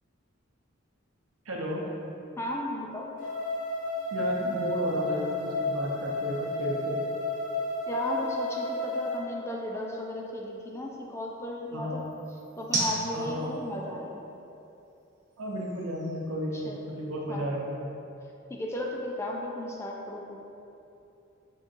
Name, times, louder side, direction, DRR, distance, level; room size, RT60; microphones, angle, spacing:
voice 1, 1.5-1.9 4.1-7.0 11.7-12.0 13.1-13.5 15.4-17.9, equal, 80° right, -2 dB, 0.7 m, -33 dB
voice 2, 2.4-3.1 7.9-12.0 12.6-14.2 16.5-16.9 17.3-17.6 18.5-20.4, left 1 dB, 15° left, -2 dB, 0.4 m, -35 dB
sound 1, 2.9-17.2, right 2 dB, 35° right, 1.2 m, -42 dB
sound 2, 3.2-9.2, left 2 dB, 40° left, 1.0 m, -31 dB
5.2 x 3.7 x 2.5 m, 2.8 s
head